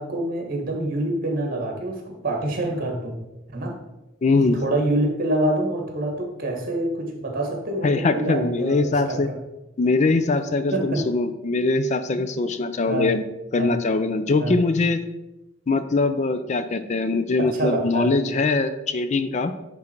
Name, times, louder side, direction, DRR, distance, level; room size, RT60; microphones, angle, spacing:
voice 1, 0.0-3.2 3.5-3.7 4.4-9.4 10.7-11.0 12.9-13.1 13.6-13.7 14.4-14.6 17.4-18.1, right 1 dB, 50° right, 1 dB, 1.6 m, -26 dB
voice 2, 4.2-4.6 7.8-9.3 9.8-13.2 13.5-15.0 15.7-19.5, left 3 dB, 40° left, 11 dB, 0.4 m, -22 dB
9.5 x 3.8 x 4.5 m, 0.99 s
head